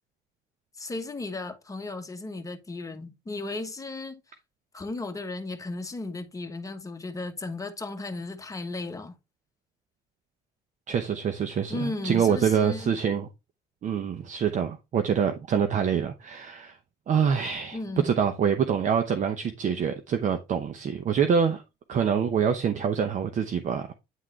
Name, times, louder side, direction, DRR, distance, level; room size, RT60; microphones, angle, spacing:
voice 1, 0.8-4.2 4.7-9.1 11.7-12.9 17.7-18.1, left 2 dB, 20° left, 1.2 m, -35 dB
voice 2, 10.9-13.3 13.8-16.8 17.1-17.8 18.0-21.6 21.9-23.9, right 7 dB, 45° right, 0.9 m, -25 dB
9.3 x 3.7 x 3.3 m
cardioid pair, 110°, 17 cm